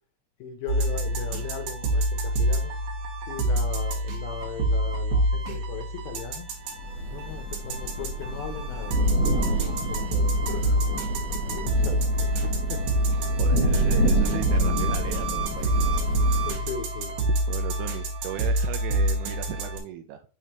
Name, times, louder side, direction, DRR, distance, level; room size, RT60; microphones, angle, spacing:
voice 1, 0.4-2.7 3.3-6.5 7.1-10.6 11.5-12.8 16.4-17.3, left 7 dB, 75° left, 2.3 m, -38 dB
sound 1, 0.7-19.8, right 1 dB, 65° right, 2.5 m, -27 dB
Thunder / Rain, 6.8-16.5, right 1 dB, 60° left, 1.9 m, -28 dB
voice 2, 13.1-16.0 17.5-20.2, right 10 dB, 80° right, 2.4 m, -37 dB
6.7 x 4.9 x 2.9 m
omnidirectional pair, 5.1 m